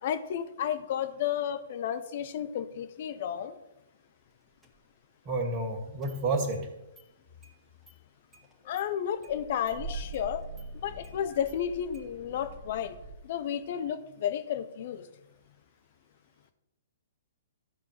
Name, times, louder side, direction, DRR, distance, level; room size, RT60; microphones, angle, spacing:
voice 1, 0.0-3.6 8.7-10.4 10.8-13.0 13.2-15.1, left 9 dB, 50° left, 9 dB, 1.0 m, -32 dB
Engine starting, 4.6-4.7 6.0-6.6 7.0-7.1 7.4-7.5 7.9-8.0 8.3-8.9 9.2-13.2, right 3 dB, ahead, 2.2 m, -44 dB
voice 2, 5.3-6.7, right 2 dB, 35° right, 3 dB, 2.2 m, -30 dB
12.5 x 4.5 x 6.7 m, 0.92 s
figure-of-eight pair, 120°, 0 cm